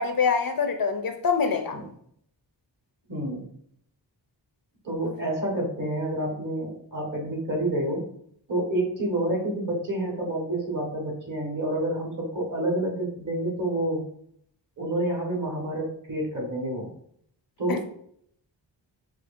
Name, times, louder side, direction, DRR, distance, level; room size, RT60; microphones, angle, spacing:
voice 1, 0.0-1.8 5.1-5.2 17.7-17.8, left 5 dB, 50° left, 0.5 m, -25 dB
voice 2, 3.1-3.5 4.8-8.1 8.5-14.0 14.8-16.9 17.6-17.8, right 1 dB, 45° right, 1.3 m, -28 dB
4.3 x 2.4 x 2.5 m
cardioid pair, 50°, 45 cm